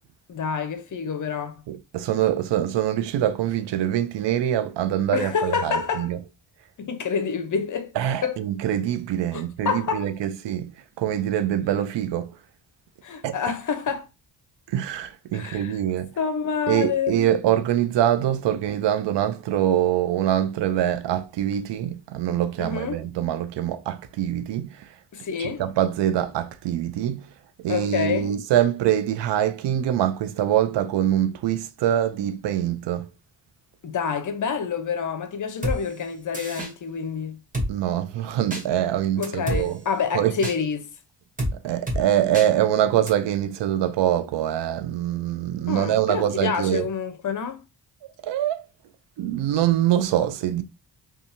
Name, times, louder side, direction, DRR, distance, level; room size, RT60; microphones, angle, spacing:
voice 1, 0.3-1.6 5.1-6.1 6.8-7.9 8.2-8.4 9.3-10.1 13.0-14.1 15.3-15.8 16.2-17.2 22.6-23.0 25.1-25.6 27.7-28.3 33.8-37.4 39.2-40.9 45.7-47.6, left 6 dB, 45° left, 0.6 m, -27 dB
voice 2, 1.7-6.2 8.0-12.4 13.2-13.4 14.7-16.1 16.7-24.8 25.4-27.2 27.6-33.1 37.7-39.8 40.1-40.3 41.6-46.9 48.2-48.6 49.2-50.6, right 11 dB, 70° right, 0.5 m, -24 dB
Drum kit, 35.6-35.8 36.3-36.7 37.5-37.7 38.5-38.6 39.2-39.6 40.4-40.6 41.4-41.5 41.9-42.0 42.3-42.5 43.1-43.2, equal, 20° right, 0.9 m, -27 dB
2.6 x 2.4 x 2.6 m
cardioid pair, 60°, 45 cm